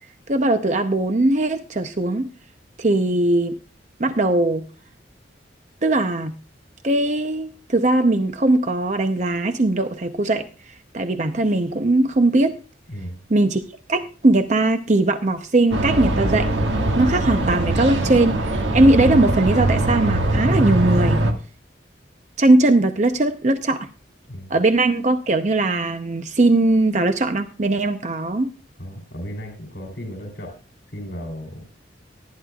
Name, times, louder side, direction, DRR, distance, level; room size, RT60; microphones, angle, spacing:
voice 1, 0.3-2.3 2.8-3.6 4.0-4.6 5.8-6.3 6.8-10.5 10.9-12.6 13.3-13.6 13.9-16.5 17.0-21.2 22.4-23.9 24.5-28.5, right 2 dB, 40° right, 8 dB, 0.7 m, -19 dB
sound 1, 15.7-21.3, right 1 dB, 80° right, 1.8 m, -21 dB
voice 2, 28.8-30.5 30.9-31.7, equal, 65° left, 1 dB, 3.3 m, -34 dB
18.5 x 10.5 x 2.4 m, 0.34 s
head